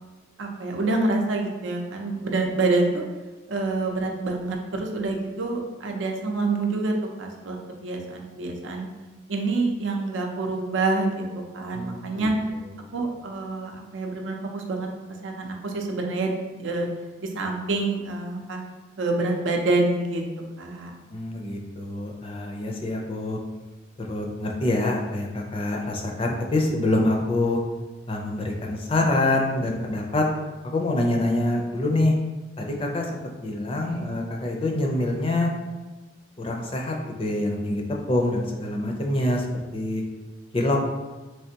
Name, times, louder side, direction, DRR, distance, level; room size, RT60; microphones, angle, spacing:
voice 1, 0.4-3.0 3.5-8.9 9.3-12.3 12.9-14.9 15.2-16.9 17.2-18.6 19.0-20.2 20.6-20.9 33.8-34.2, right 3 dB, 90° right, 2 dB, 0.6 m, -27 dB
voice 2, 11.7-12.3 21.1-23.4 24.0-27.6 28.1-30.3 30.6-32.2 32.6-35.5 36.4-37.8 38.1-40.0 40.5-40.8, left 2 dB, 30° left, 0 dB, 0.4 m, -25 dB
3.4 x 3.2 x 2.8 m, 1.2 s
head